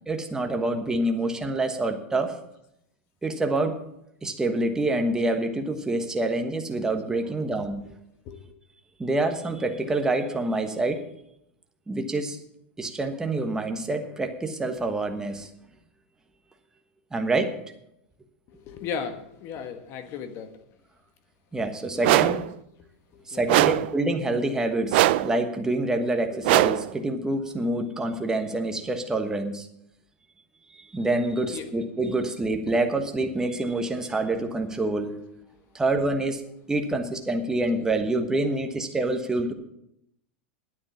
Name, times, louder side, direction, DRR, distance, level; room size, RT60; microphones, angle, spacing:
voice 1, 0.1-2.4 3.2-3.8 4.2-7.8 9.0-11.0 11.9-12.4 12.8-15.5 17.1-17.6 21.5-22.4 23.3-29.7 30.9-35.2 35.7-36.4 36.7-39.5, right 2 dB, 10° right, 5 dB, 1.2 m, -26 dB
voice 2, 18.5-20.5 21.9-22.4 23.3-23.4 31.5-31.7, left 6 dB, 45° left, 8 dB, 1.4 m, -36 dB
sound 1, 22.0-22.5 23.5-24.0 24.9-25.4 26.4-26.9, right 16 dB, 60° right, 0.4 m, -20 dB
9.9 x 8.6 x 7.1 m, 0.79 s
supercardioid pair, 130°, 6 cm